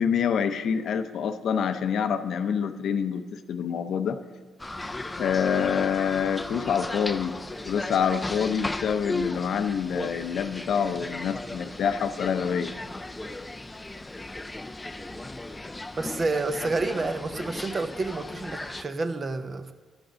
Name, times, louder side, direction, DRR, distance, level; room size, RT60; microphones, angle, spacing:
voice 1, 0.0-4.2 5.2-7.4 7.6-12.7, left 7 dB, 65° left, 9 dB, 0.6 m, -26 dB
sound 1, 4.6-18.8, left 2 dB, 15° left, 0.4 m, -36 dB
voice 2, 16.0-19.7, right 3 dB, 35° right, 9 dB, 0.7 m, -29 dB
11.5 x 6.2 x 5.1 m, 1.5 s
cardioid pair, 90°, 0 cm